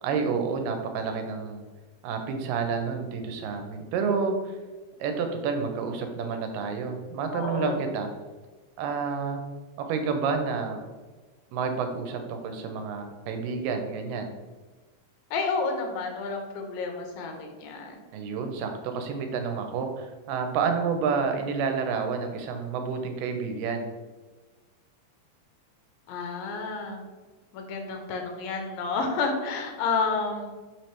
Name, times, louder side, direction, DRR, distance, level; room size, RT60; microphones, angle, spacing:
voice 1, 0.0-1.6 2.0-4.6 5.0-8.1 8.8-9.4 9.8-10.8 11.5-14.3 18.1-23.9, right 5 dB, 85° right, 5 dB, 2.2 m, -29 dB
voice 2, 7.3-7.8 15.3-18.0 26.1-27.0 27.5-30.5, left 4 dB, 85° left, 3 dB, 2.3 m, -30 dB
5.7 x 2.9 x 3.2 m, 1.3 s
omnidirectional pair, 3.9 m